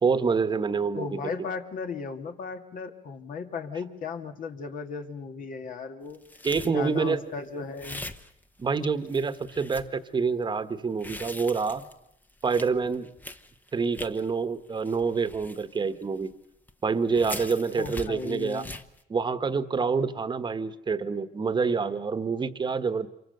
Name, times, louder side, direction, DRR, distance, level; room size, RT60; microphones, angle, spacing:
voice 1, 0.0-1.2 6.4-7.2 8.6-11.8 12.4-13.1 13.7-16.3 16.8-18.6 19.1-23.1, right 5 dB, 25° right, 11 dB, 1.4 m, -27 dB
voice 2, 0.9-6.2 6.6-8.1 17.8-18.8, left 5 dB, 55° left, 6 dB, 2.3 m, -36 dB
sound 1, 6.1-7.1 7.8-8.8 9.1-9.9 10.8-14.3 14.7-16.3 16.7-16.8 17.1-19.0, left 1 dB, 10° left, 1.1 m, -42 dB
27.0 x 24.0 x 6.9 m, 0.81 s
cardioid pair, 110°, 17 cm